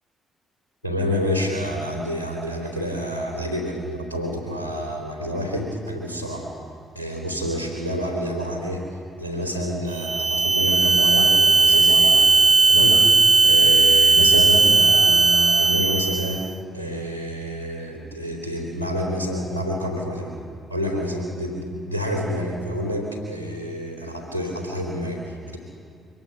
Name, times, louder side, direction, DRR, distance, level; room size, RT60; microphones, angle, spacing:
voice 1, 0.8-6.5 6.9-8.8 9.2-12.2 12.7-13.0 13.4-16.4 16.7-20.3 20.7-25.6, equal, 85° left, 0 dB, 3.2 m, -28 dB
sound 1, 9.9-16.5, right 4 dB, 45° right, 1.3 m, -17 dB
24.0 x 18.5 x 5.9 m, 2.6 s
figure-of-eight pair, 40°, 0 cm